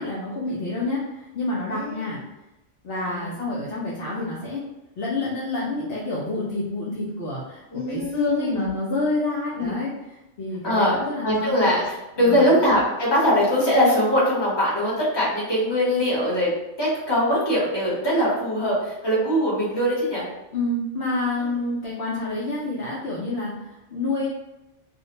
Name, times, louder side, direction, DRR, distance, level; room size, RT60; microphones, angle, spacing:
voice 1, 0.0-2.2 2.8-4.6 5.0-9.9 10.4-11.5 12.2-12.5 20.5-24.3, left 2 dB, 65° left, -5 dB, 0.7 m, -28 dB
voice 2, 7.7-8.7 9.5-9.7 10.6-16.5 16.8-20.3, equal, 25° left, -7 dB, 0.9 m, -22 dB
2.5 x 2.1 x 2.8 m, 0.97 s
omnidirectional pair, 1.2 m